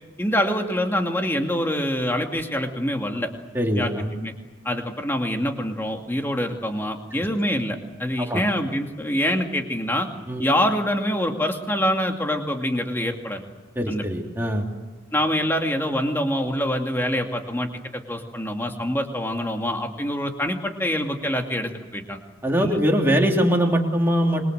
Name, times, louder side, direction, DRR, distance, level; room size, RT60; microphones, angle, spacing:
voice 1, 0.2-3.3 3.8-3.9 4.2-4.3 4.6-10.1 10.4-13.4 13.9-14.0 15.1-22.2 22.6-22.8, equal, 10° left, 3 dB, 2.4 m, -25 dB
voice 2, 3.5-4.1 8.2-8.4 10.3-10.4 13.7-14.7 22.4-24.5, equal, 10° right, 0 dB, 3.1 m, -22 dB
27.0 x 22.5 x 7.9 m, 1.2 s
head